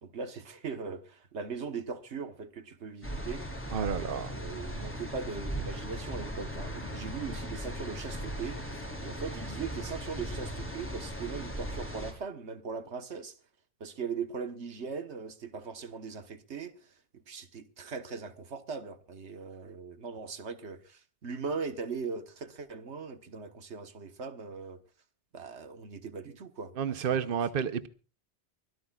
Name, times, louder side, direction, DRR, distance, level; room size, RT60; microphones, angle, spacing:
voice 1, 0.0-13.4 13.8-24.8 25.3-27.4, right 5 dB, 85° right, 1.6 m, -40 dB
sound 1, 3.0-12.1, equal, 10° left, 4.5 m, -38 dB
voice 2, 3.7-4.3 26.8-27.9, right 7 dB, 55° right, 1.0 m, -30 dB
24.5 x 16.5 x 2.4 m
omnidirectional pair, 1.1 m